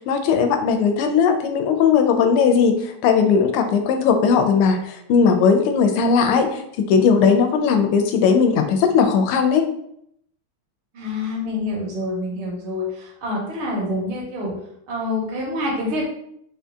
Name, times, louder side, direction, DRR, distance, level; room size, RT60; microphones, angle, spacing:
voice 1, 0.1-6.6 6.9-9.7, left 6 dB, 90° left, 6 dB, 1.5 m, -18 dB
voice 2, 10.9-14.5 14.9-16.0, left 2 dB, 75° right, -1 dB, 1.8 m, -26 dB
3.9 x 2.7 x 3.4 m, 0.74 s
omnidirectional pair, 2.4 m